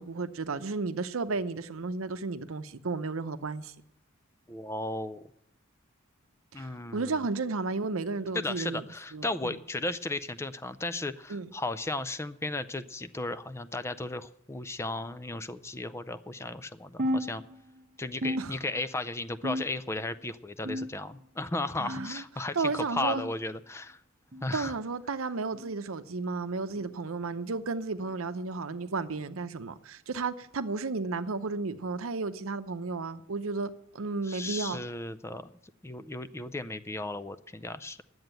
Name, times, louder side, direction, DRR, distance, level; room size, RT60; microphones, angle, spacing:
voice 1, 0.0-3.7 6.6-8.8 9.1-9.5 11.3-11.5 18.4-18.5 21.8-22.2 22.5-23.2 24.5-34.8, right 3 dB, 75° right, 0.7 m, -33 dB
voice 2, 4.5-5.2 6.5-7.2 8.3-17.4 18.0-24.0 24.4-24.7 34.2-35.5 35.8-38.0, left 2 dB, 15° left, 0.4 m, -35 dB
sound 1, 17.0-17.8 18.2-19.0 19.4-20.0 20.7-21.3 21.9-22.3 23.1-23.3 24.3-24.5 25.5-25.7 26.8-26.9 28.0-28.2 29.2-29.4 30.4-30.5 31.6-31.7, equal, 35° right, 0.8 m, -35 dB
11.0 x 7.9 x 9.0 m
head